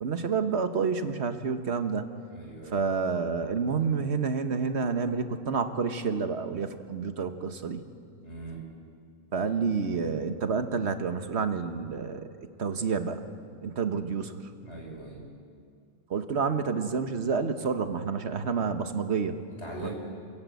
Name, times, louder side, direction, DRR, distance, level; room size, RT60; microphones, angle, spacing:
voice 1, 0.0-2.1 2.7-7.8 9.3-12.3 12.6-13.3 13.6-14.4 16.1-19.4 19.8-19.9, right 5 dB, 60° right, 8 dB, 1.5 m, -29 dB
voice 2, 2.3-2.8 8.2-8.6 14.6-15.3 19.6-19.9, right 2 dB, 55° left, -1 dB, 5.2 m, -40 dB
27.0 x 17.0 x 8.3 m, 2.3 s
omnidirectional pair, 1.3 m